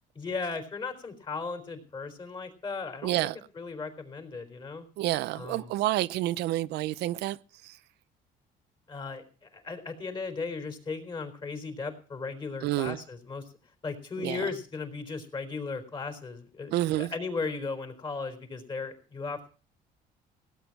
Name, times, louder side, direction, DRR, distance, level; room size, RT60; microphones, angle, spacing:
voice 1, 0.1-4.8 5.3-5.7 8.9-13.4 13.8-16.7 17.0-19.5, left 4 dB, 30° left, 4.0 m, -36 dB
voice 2, 3.0-3.4 5.0-7.4 7.6-7.8 12.6-13.0 14.2-14.5 16.7-17.1, right 16 dB, 80° right, 0.6 m, -29 dB
17.5 x 9.2 x 6.0 m
cardioid pair, 110°, 17 cm